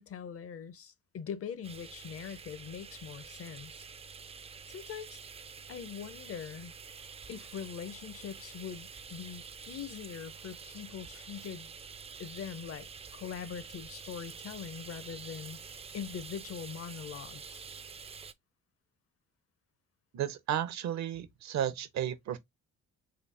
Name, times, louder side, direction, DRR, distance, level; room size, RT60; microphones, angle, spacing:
voice 1, 0.0-3.8 4.7-5.2 5.7-6.7 7.3-11.7 12.2-15.6 15.9-17.6, left 7 dB, 50° left, 0.6 m, -42 dB
sound 1, 1.6-18.3, right 5 dB, 20° right, 0.3 m, -48 dB
voice 2, 20.1-22.4, right 10 dB, 65° right, 0.7 m, -33 dB
3.9 x 2.3 x 3.2 m
cardioid pair, 90°, 30 cm